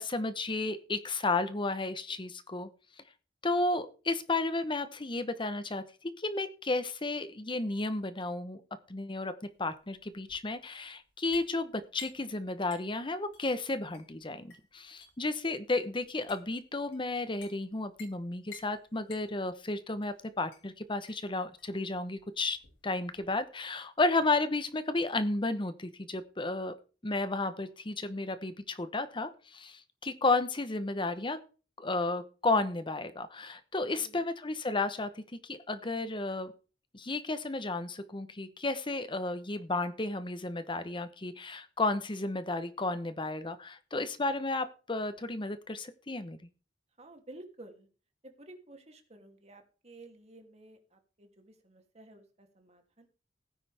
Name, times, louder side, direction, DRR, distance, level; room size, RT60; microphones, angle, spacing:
voice 1, 0.0-2.7 3.4-8.6 8.9-9.3 9.6-22.6 22.8-26.7 27.0-31.4 31.8-36.5 36.9-46.4, left 2 dB, 30° left, 12 dB, 0.9 m, -33 dB
sound 1, 9.5-23.4, left 6 dB, 75° left, 6.0 m, -56 dB
voice 2, 33.9-34.3 47.0-47.9 48.2-53.1, right 2 dB, 40° right, 4 dB, 2.8 m, -53 dB
17.5 x 9.9 x 3.5 m, 0.36 s
head